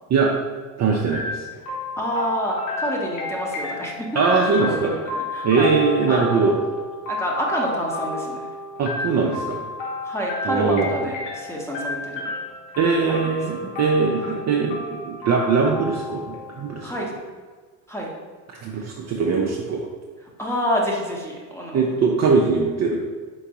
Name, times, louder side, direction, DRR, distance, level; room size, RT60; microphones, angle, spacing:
voice 1, 0.8-1.5 4.1-4.9 5.4-6.6 8.8-9.6 10.4-10.9 12.8-16.9 18.5-19.8 21.7-23.0, right 4 dB, 35° right, -1 dB, 0.5 m, -21 dB
sound 1, 1.1-16.9, left 3 dB, 65° left, 1.2 m, -32 dB
voice 2, 2.0-4.1 4.5-5.7 6.1-6.5 7.1-8.5 10.0-12.3 13.1-13.3 14.2-14.4 16.8-17.1 17.9-18.1 18.8-18.9 20.4-21.8, equal, 5° left, -2 dB, 0.9 m, -28 dB
4.6 x 3.7 x 2.9 m, 1.5 s
supercardioid pair, 90°, 49 cm